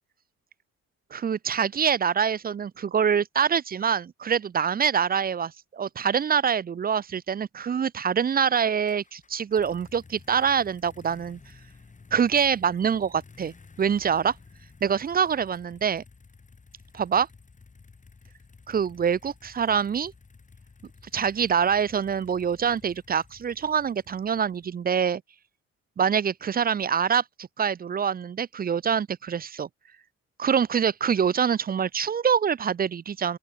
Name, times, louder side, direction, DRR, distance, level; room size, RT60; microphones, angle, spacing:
voice 1, 1.1-11.4 12.1-14.4 14.8-16.0 16.9-17.3 18.7-20.1 21.1-25.2 26.0-29.7 30.4-33.4, right 7 dB, 30° right, 0.5 m, -25 dB
sound 1, 8.9-24.8, left 4 dB, 25° left, 1.9 m, -53 dB
open air
cardioid pair, 90°, 30 cm